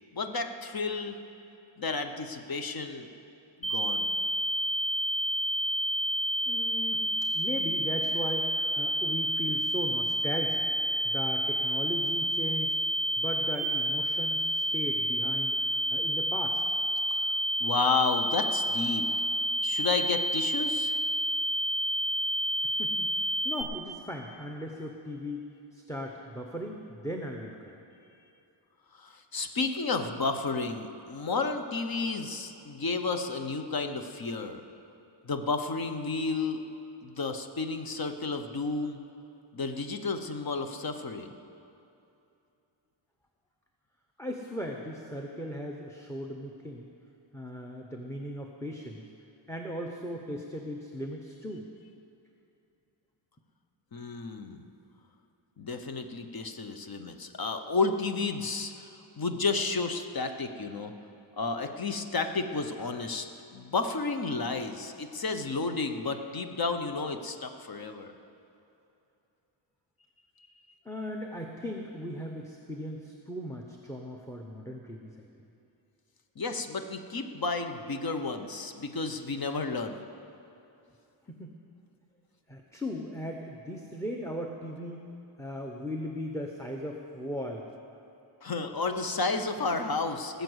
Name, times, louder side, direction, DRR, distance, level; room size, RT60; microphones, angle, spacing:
voice 1, 0.1-1.2 1.8-3.1 3.6-4.1 17.1-17.3 17.6-19.1 19.6-21.0 28.9-34.6 35.2-36.6 37.0-39.0 39.5-41.3 53.9-54.7 55.6-60.9 61.4-63.3 63.5-68.1 76.4-80.0 88.4-90.4, left 4 dB, 50° left, 7 dB, 1.0 m, -32 dB
sound 1, 3.6-23.6, right 1 dB, 30° left, 1.7 m, -29 dB
voice 2, 6.4-7.0 7.3-10.6 11.0-12.7 13.2-15.6 15.9-16.6 22.6-23.1 23.4-25.4 25.7-27.8 44.2-46.9 47.3-49.0 49.5-51.7 70.8-75.3 81.3-81.5 82.5-85.1 85.4-87.6, equal, 5° left, 1 dB, 0.9 m, -38 dB
18.5 x 6.7 x 8.0 m, 2.7 s
wide cardioid pair, 125°, 46 cm